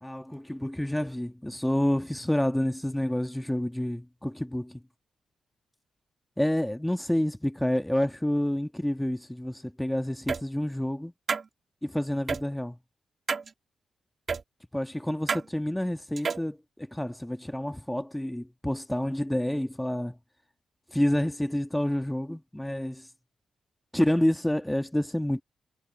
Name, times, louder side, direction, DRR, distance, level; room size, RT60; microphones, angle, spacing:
voice 1, 0.0-4.8 6.4-11.1 11.8-12.8 14.7-20.2 20.9-23.1 23.9-25.4, left 1 dB, 5° left, 1.8 m, -28 dB
sound 1, 10.3-10.4 11.3-11.4 12.3-12.4 13.3-13.5 14.3-14.4 15.3-15.4 16.2-16.5, right 5 dB, 50° right, 2.6 m, -29 dB
cardioid pair, 65°, 0 cm